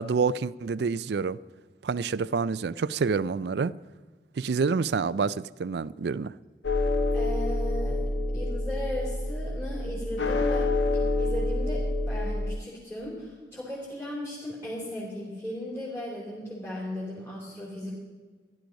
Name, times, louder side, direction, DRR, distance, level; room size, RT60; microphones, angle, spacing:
voice 1, 0.0-1.4 1.8-3.7 4.4-6.3, right 5 dB, 70° right, 0.4 m, -27 dB
sound 1, 6.6-12.6, left 2 dB, 85° left, 1.2 m, -27 dB
voice 2, 7.1-8.1 8.3-18.0, left 1 dB, 10° left, 3.3 m, -36 dB
15.0 x 12.0 x 5.2 m
head